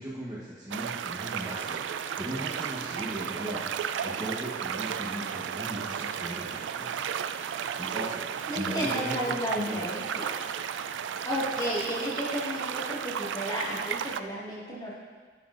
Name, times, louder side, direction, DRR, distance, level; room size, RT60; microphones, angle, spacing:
voice 1, 0.0-7.0 7.8-8.3 8.5-9.9, equal, 20° right, -7 dB, 1.0 m, -37 dB
sound 1, 0.7-14.2, right 8 dB, 90° right, 0.3 m, -34 dB
voice 2, 8.5-10.3 11.2-14.9, equal, 20° left, -7 dB, 1.9 m, -33 dB
11.0 x 6.9 x 2.5 m, 1.5 s
head